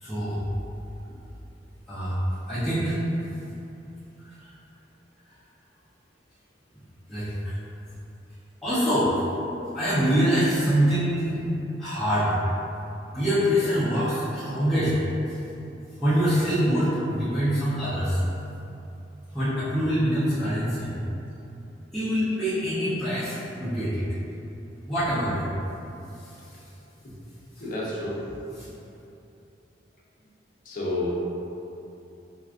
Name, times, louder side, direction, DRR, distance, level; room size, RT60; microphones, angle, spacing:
voice 1, 0.0-0.4 1.9-2.2 2.5-2.9 4.4-4.5 7.1-7.5 8.6-9.1 9.7-11.4 11.8-12.3 13.1-14.9 15.3-15.4 16.0-18.2 19.3-20.9 21.9-24.0 24.9-25.5 27.6-27.7 28.6-28.7, equal, ahead, -16 dB, 0.7 m, -24 dB
voice 2, 27.6-28.2 30.7-31.3, left 1 dB, 50° left, -6 dB, 0.7 m, -29 dB
4.6 x 2.4 x 2.5 m, 2.8 s
head